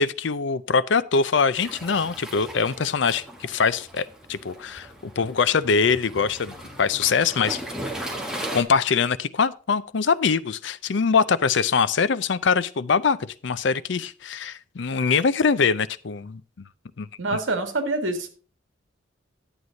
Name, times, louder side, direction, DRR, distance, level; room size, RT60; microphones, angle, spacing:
voice 1, 0.0-7.6 8.5-16.4 17.0-17.4, left 5 dB, 65° left, 0.5 m, -23 dB
Waves surf, 1.6-8.6, right 1 dB, 5° right, 1.3 m, -37 dB
voice 2, 17.2-18.3, right 2 dB, 70° right, 1.9 m, -26 dB
11.0 x 8.0 x 3.9 m
head